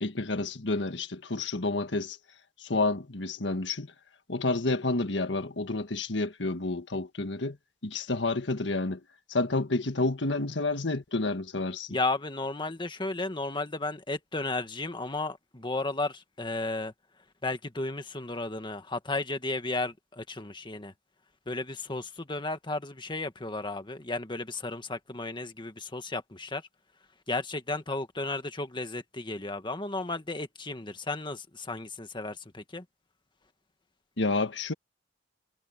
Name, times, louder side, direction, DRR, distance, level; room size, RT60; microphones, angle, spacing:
voice 1, 0.0-2.2 2.6-3.9 4.3-7.6 7.8-9.0 9.3-11.9 34.2-34.7, left 2 dB, 80° left, 1.6 m, -29 dB
voice 2, 11.9-16.9 17.4-20.9 21.5-26.6 27.3-32.8, left 2 dB, 25° left, 1.7 m, -34 dB
head